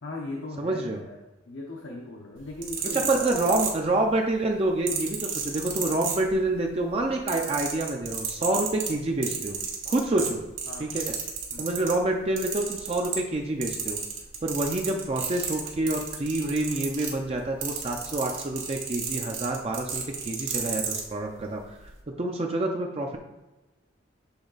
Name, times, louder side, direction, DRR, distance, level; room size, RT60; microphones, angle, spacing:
voice 1, 0.0-1.2 1.5-3.3 10.1-10.3 10.7-10.9 11.5-11.7, left 2 dB, 70° left, -1 dB, 0.8 m, -38 dB
voice 2, 0.6-1.0 2.9-9.6 9.9-10.4 10.8-11.0 11.6-14.0 14.4-21.6 22.2-23.1, right 2 dB, 30° right, 2 dB, 0.5 m, -27 dB
sound 1, 2.4-4.2 4.9-6.6 6.9-12.0 12.4-13.4 13.6-21.0 21.8-21.9, right 7 dB, 75° right, 1.5 m, -32 dB
7.0 x 3.8 x 4.0 m, 1.1 s
head